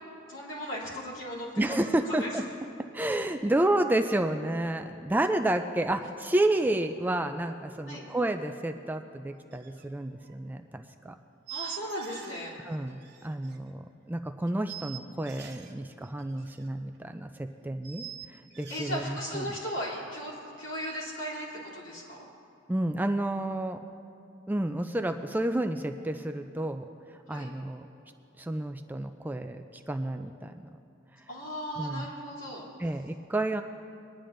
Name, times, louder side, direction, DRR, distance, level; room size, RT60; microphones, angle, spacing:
voice 1, 0.3-1.5 2.1-2.3 7.9-8.1 11.5-12.5 18.7-22.3 27.3-27.5 31.3-32.7, equal, 70° left, -5 dB, 2.9 m, -37 dB
voice 2, 1.6-2.4 2.9-11.2 12.6-13.8 14.1-18.0 18.3-19.5 22.7-23.8 24.5-26.9 27.3-27.8 28.4-30.8 31.8-32.1 32.8-33.6, right 1 dB, 10° right, 6 dB, 0.3 m, -30 dB
sound 1, 9.5-9.9 10.1-10.3 11.5-12.5 12.7-13.6 14.5-15.7 16.0-16.7 16.9-17.0 17.8-19.0, right 11 dB, 60° right, 1.1 m, -44 dB
22.0 x 10.5 x 2.6 m, 2.7 s
head